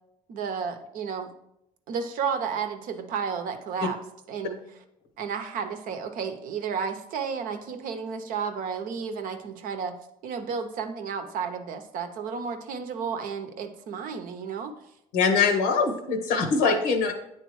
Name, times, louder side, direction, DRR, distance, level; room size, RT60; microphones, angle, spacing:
voice 1, 0.3-1.3 1.9-4.0 4.3-4.6 5.2-9.9 10.2-14.7, right 6 dB, 65° right, 7 dB, 0.8 m, -32 dB
voice 2, 15.1-17.1, left 5 dB, 85° left, 6 dB, 1.0 m, -23 dB
9.1 x 3.7 x 3.1 m, 0.81 s
supercardioid pair, 75°, 15 cm